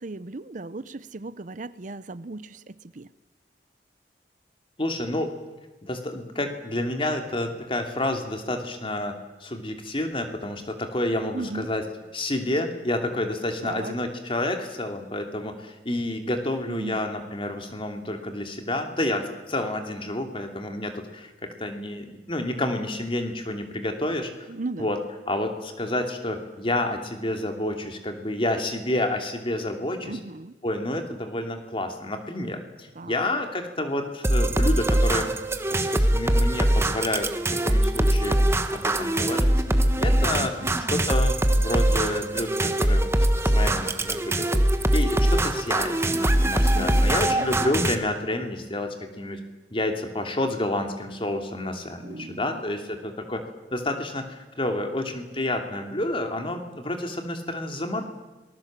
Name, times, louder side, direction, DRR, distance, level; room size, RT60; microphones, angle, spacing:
voice 1, 0.0-3.1 11.3-11.7 13.6-13.9 16.7-17.0 24.5-24.9 30.0-30.6 33.0-33.4 40.3-40.9 46.6-47.5 52.0-52.6, right 2 dB, 45° right, 16 dB, 0.7 m, -37 dB
voice 2, 4.8-5.3 5.8-11.8 12.1-24.5 24.8-25.0 25.3-30.2 30.6-35.3 35.8-37.3 37.6-38.4 38.7-39.5 40.0-40.5 40.9-43.1 43.5-44.6 44.9-49.4 49.7-53.4 53.7-58.0, left 1 dB, 30° left, 5 dB, 2.7 m, -29 dB
sound 1, 34.2-48.0, right 1 dB, 15° right, 1.3 m, -22 dB
27.0 x 20.0 x 7.5 m, 1.1 s
head